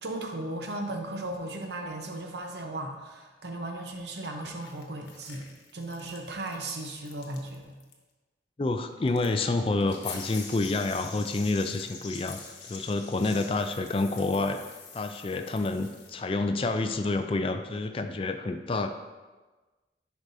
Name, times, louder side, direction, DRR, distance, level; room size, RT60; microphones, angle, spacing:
voice 1, 0.0-5.5 5.7-7.8, right 2 dB, 70° right, 3 dB, 0.8 m, -36 dB
sound 1, 4.6-7.6 7.8-7.9 9.1-16.1, left 5 dB, 90° left, 1.0 m, -45 dB
voice 2, 8.6-12.4 12.7-14.6 14.9-19.0, left 2 dB, 30° left, 7 dB, 0.3 m, -28 dB
10.5 x 4.8 x 2.7 m, 1.3 s
head